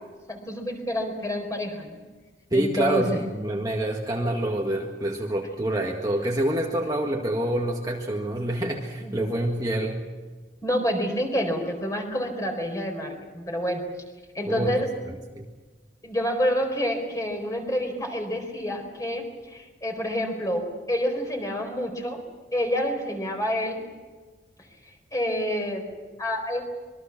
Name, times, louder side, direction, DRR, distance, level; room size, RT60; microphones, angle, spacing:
voice 1, 0.3-2.0 2.5-3.0 9.0-9.2 10.6-13.8 14.3-14.9 16.0-22.2 22.5-23.8 25.1-25.8 26.2-26.6, equal, 20° left, 3 dB, 4.5 m, -28 dB
voice 2, 2.5-10.0 14.5-14.8 15.3-15.5, right 1 dB, 20° right, 0 dB, 1.8 m, -27 dB
26.5 x 22.5 x 6.0 m, 1.4 s
head